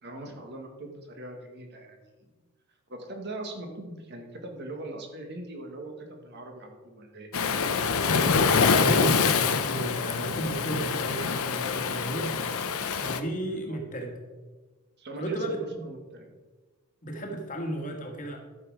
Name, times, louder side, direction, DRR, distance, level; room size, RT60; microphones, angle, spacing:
voice 1, 0.0-2.0 2.9-7.3 13.6-13.8 15.0-15.4 15.8-16.3, right 2 dB, 50° right, 3 dB, 1.7 m, -41 dB
Waves surf, 7.3-13.2, left 5 dB, 75° left, 0.7 m, -25 dB
voice 2, 8.1-12.4 13.0-14.2 15.2-15.8 17.0-18.4, right 1 dB, 35° left, 3 dB, 1.6 m, -33 dB
12.5 x 6.4 x 4.8 m, 1.3 s
head